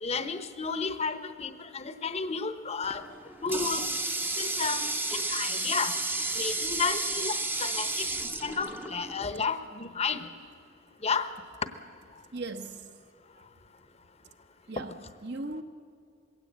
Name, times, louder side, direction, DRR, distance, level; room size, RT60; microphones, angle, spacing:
voice 1, 0.0-3.1 3.4-3.9 4.4-6.0 6.4-10.3 11.0-11.3, left 5 dB, 30° left, 11 dB, 0.9 m, -32 dB
Water tap faucet, 2.8-9.3, right 2 dB, 10° right, 0.8 m, -32 dB
voice 2, 4.6-4.9 6.1-6.2 6.4-6.9 10.4-10.5 12.3-13.0 13.4-13.5 14.7-15.6, right 2 dB, 55° right, 8 dB, 1.2 m, -41 dB
21.5 x 17.0 x 8.6 m, 2.4 s
head